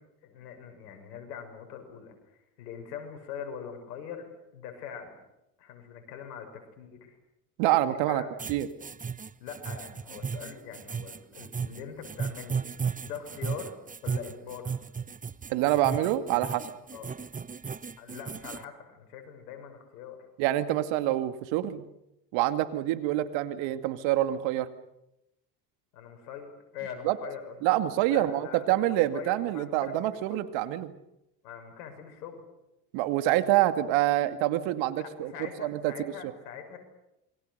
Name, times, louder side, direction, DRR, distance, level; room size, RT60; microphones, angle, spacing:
voice 1, 0.2-4.3 4.5-5.1 5.6-7.2 7.9-8.3 9.4-13.7 14.0-14.8 16.9-17.2 18.0-20.2 25.9-27.6 28.1-30.5 31.4-32.4 34.9-36.8, left 7 dB, 85° left, 6 dB, 6.8 m, -43 dB
voice 2, 7.6-8.2 8.5-8.7 15.5-16.7 20.4-21.8 22.3-24.7 27.1-27.2 27.6-30.9 32.9-35.3 35.6-35.9, right 14 dB, 65° right, 10 dB, 2.4 m, -26 dB
sound 1, 8.4-18.6, right 6 dB, 15° right, 1.0 m, -35 dB
28.0 x 24.0 x 6.7 m, 0.86 s
hypercardioid pair, 85°, 48 cm